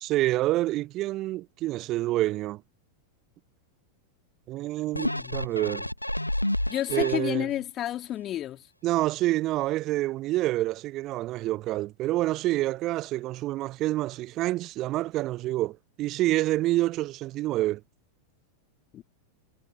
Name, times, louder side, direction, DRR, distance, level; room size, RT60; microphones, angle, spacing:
voice 1, 0.0-2.6 4.5-5.9 6.9-7.5 8.8-17.8, right 16 dB, 35° right, 0.6 m, -27 dB
sound 1, 4.9-7.6 8.1-8.2, left 1 dB, 85° left, 1.6 m, -30 dB
voice 2, 5.0-5.4 6.7-8.7 18.9-19.0, left 12 dB, 30° left, 3.1 m, -31 dB
figure-of-eight pair, 90°, 0 cm